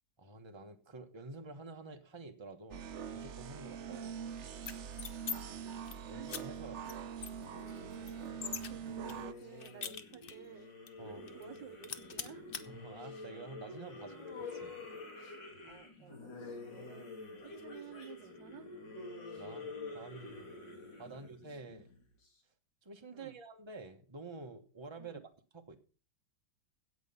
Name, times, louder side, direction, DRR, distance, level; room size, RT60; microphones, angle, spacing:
voice 1, 0.2-2.8 3.1-4.0 6.1-6.9 11.0-11.3 12.7-14.7 19.4-20.5 21.0-21.9 22.8-25.2 25.5-25.8, right 3 dB, 15° right, 1.2 m, -49 dB
sound 1, 2.7-9.3, right 7 dB, 55° right, 0.8 m, -43 dB
voice 2, 3.8-4.2 5.8-6.3 6.8-6.9 8.1-10.7 11.0-12.7 15.3-18.7 21.1-21.3 23.1-23.4 25.0-25.2, right 12 dB, 85° right, 1.5 m, -54 dB
sound 2, 4.6-5.4 5.7-6.0 6.3-6.4 6.9-7.0 7.2-8.7 9.1-10.5 10.9-11.0 11.3-11.6 11.8-12.6, left 6 dB, 45° left, 0.8 m, -42 dB
sound 3, 7.4-22.3, left 3 dB, 85° left, 3.5 m, -48 dB
16.5 x 6.3 x 5.6 m
omnidirectional pair, 1.9 m